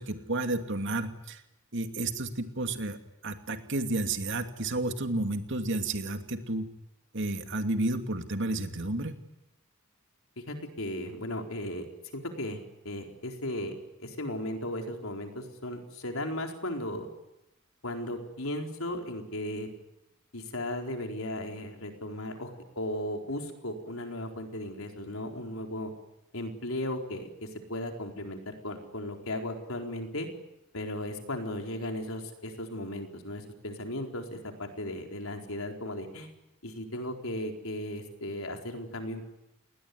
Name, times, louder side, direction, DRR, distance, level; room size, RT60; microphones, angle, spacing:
voice 1, 0.0-1.4 1.7-3.0 3.2-6.7 7.1-9.1, right 2 dB, 60° right, 7 dB, 2.6 m, -31 dB
voice 2, 10.4-11.9 12.1-12.6 12.8-17.1 17.8-19.7 20.3-22.5 22.8-25.9 26.3-30.3 30.7-36.3 36.6-39.2, left 1 dB, 85° left, 4 dB, 4.3 m, -36 dB
29.5 x 20.0 x 9.5 m, 0.91 s
head